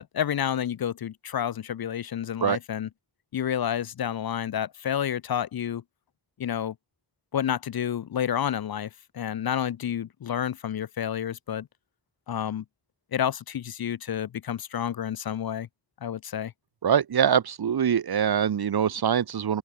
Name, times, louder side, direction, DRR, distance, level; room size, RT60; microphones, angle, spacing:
voice 1, 0.0-2.9 3.3-5.8 6.4-6.7 7.3-8.9 9.1-11.7 12.3-12.6 13.1-15.7 16.0-16.5, left 9 dB, 60° left, 0.6 m, -29 dB
voice 2, 16.8-19.6, right 8 dB, 60° right, 1.0 m, -23 dB
open air
wide cardioid pair, 125°, 42 cm